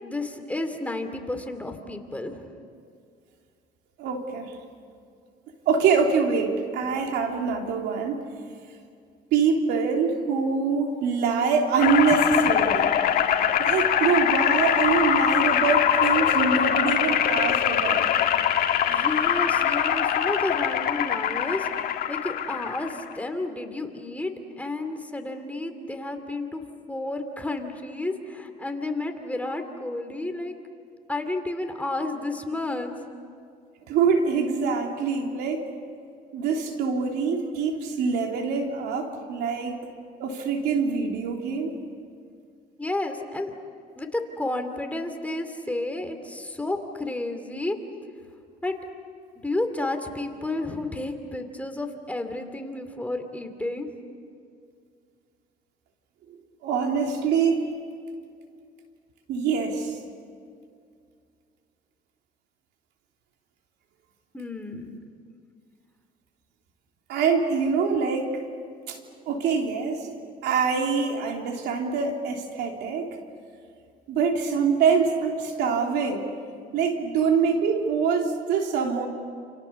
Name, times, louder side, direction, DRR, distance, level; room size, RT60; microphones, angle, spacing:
voice 1, 0.0-2.5 12.1-12.2 18.9-21.7 22.1-24.3 24.6-30.5 31.1-32.9 42.8-43.5 44.0-47.8 48.6-48.7 49.4-53.9 64.3-65.0, left 2 dB, 10° left, 5 dB, 2.8 m, -31 dB
voice 2, 4.0-4.6 5.6-8.3 9.3-12.9 13.6-18.1 33.9-35.7 36.3-39.8 40.2-41.7 56.3-56.4 56.6-57.7 59.3-60.0 67.1-68.4 68.9-69.0 69.3-70.2 70.4-73.2 74.1-76.3 76.7-79.1, right 5 dB, 85° right, 2 dB, 3.3 m, -24 dB
sound 1, 11.8-23.1, left 9 dB, 60° left, 1.8 m, -23 dB
29.0 x 28.5 x 7.1 m, 2.3 s
cardioid pair, 110°, 17 cm